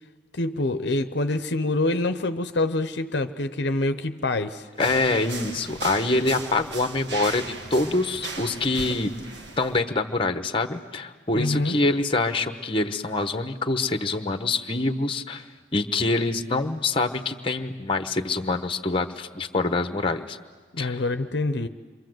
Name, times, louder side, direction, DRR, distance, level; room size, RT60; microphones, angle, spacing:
voice 1, 0.3-4.7 11.3-11.8 20.7-21.7, left 2 dB, 60° left, 10 dB, 0.8 m, -26 dB
voice 2, 4.8-9.1 9.6-15.4 15.7-20.4 20.8-21.0, left 2 dB, 25° left, 8 dB, 1.0 m, -25 dB
sound 1, 4.8-9.8, right 3 dB, 60° right, 1.8 m, -37 dB
27.5 x 24.5 x 7.9 m, 1.4 s
head